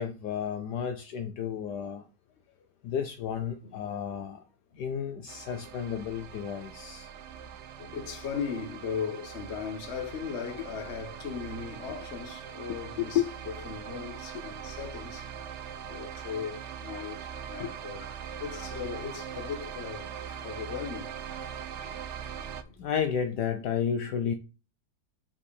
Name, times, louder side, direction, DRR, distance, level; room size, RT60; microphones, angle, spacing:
voice 1, 0.0-2.0 2.8-4.4 4.8-7.1 12.7-13.3 17.5-18.1 18.5-18.6 20.3-20.4 22.8-24.3, left 8 dB, 70° left, 1.2 m, -32 dB
sound 1, 5.3-22.6, right 8 dB, 70° right, 0.6 m, -41 dB
voice 2, 7.8-15.3 15.9-18.1 18.4-21.5 21.8-21.9 22.7-22.8, left 6 dB, 40° left, 1.3 m, -38 dB
5.5 x 4.5 x 4.8 m
omnidirectional pair, 2.0 m